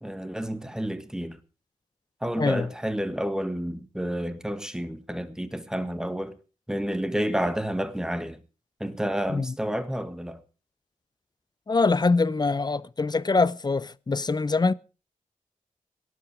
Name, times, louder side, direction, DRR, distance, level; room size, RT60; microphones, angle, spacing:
voice 1, 0.0-1.4 2.2-6.4 6.7-8.4 8.8-10.4, equal, 5° right, 1.6 m, -30 dB
voice 2, 2.4-2.7 9.3-9.5 11.7-14.7, left 3 dB, 30° left, 0.7 m, -24 dB
18.0 x 11.5 x 5.0 m
wide cardioid pair, 85°, 14 cm